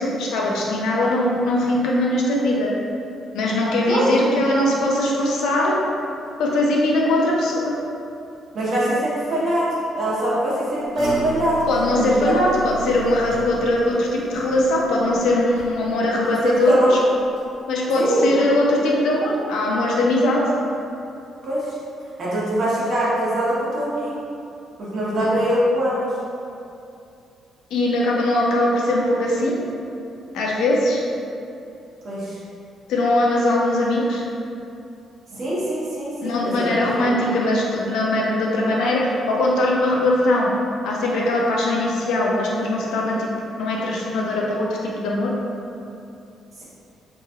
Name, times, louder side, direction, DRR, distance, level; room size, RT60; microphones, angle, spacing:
voice 1, 0.0-2.7 3.3-5.7 6.4-7.7 11.7-17.0 17.7-20.4 25.2-25.3 27.7-29.6 30.3-31.0 32.9-34.2 36.2-40.5 40.8-45.3, left 1 dB, 85° left, -3 dB, 0.5 m, -21 dB
voice 2, 3.9-4.3 8.5-11.7 12.0-12.3 16.2-17.0 17.9-18.3 21.4-21.8 22.2-24.2 24.8-26.2 32.0-32.4 35.3-36.7 36.9-37.4 46.6-46.7, right 1 dB, 60° right, -8 dB, 1.0 m, -23 dB
sound 1, 10.9-16.2 16.5-16.9 17.3-17.4, right 1 dB, 80° right, 1.3 m, -34 dB
3.0 x 2.7 x 2.4 m, 2.6 s
cardioid pair, 90°, 0 cm